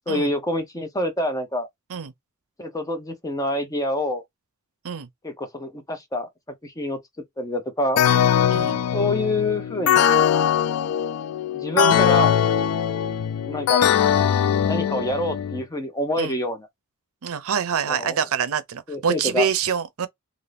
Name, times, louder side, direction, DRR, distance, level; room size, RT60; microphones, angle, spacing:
voice 1, 0.1-1.7 2.6-4.2 5.2-6.3 6.6-7.0 7.4-8.0 8.9-10.1 11.5-12.3 13.4-13.9 14.7-16.7 17.9-18.2 18.9-19.5, left 1 dB, 15° left, 0.7 m, -26 dB
sound 1, 8.0-15.6, left 9 dB, 70° left, 0.3 m, -21 dB
voice 2, 17.2-20.1, right 7 dB, 70° right, 0.5 m, -26 dB
2.6 x 2.5 x 3.3 m
head